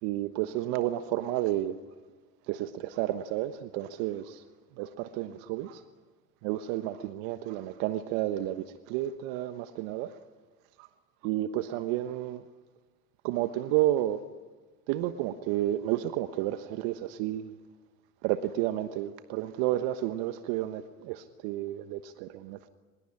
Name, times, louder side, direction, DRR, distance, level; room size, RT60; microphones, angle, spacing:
voice 1, 0.0-1.8 2.5-4.4 4.8-5.8 6.4-10.1 10.8-10.9 11.2-12.4 13.2-14.2 14.9-17.5 18.2-22.7, right 14 dB, 55° right, 10 dB, 1.3 m, -31 dB
24.0 x 21.5 x 10.0 m, 1.3 s
hypercardioid pair, 85°, 49 cm